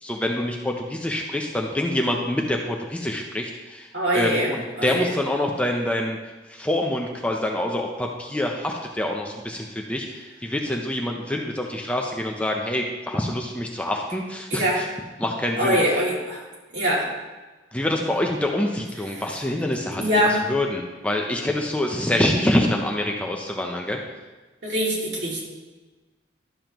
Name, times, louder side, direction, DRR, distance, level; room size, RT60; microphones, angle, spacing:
voice 1, 0.0-14.9 15.2-15.8 17.7-24.0, left 1 dB, 5° left, 1 dB, 0.6 m, -26 dB
voice 2, 3.9-4.5 4.8-5.1 14.5-14.8 15.6-16.4 16.7-17.1 20.0-20.4 24.6-25.4, equal, 65° right, -4 dB, 2.5 m, -23 dB
12.0 x 7.2 x 3.0 m, 1.2 s
head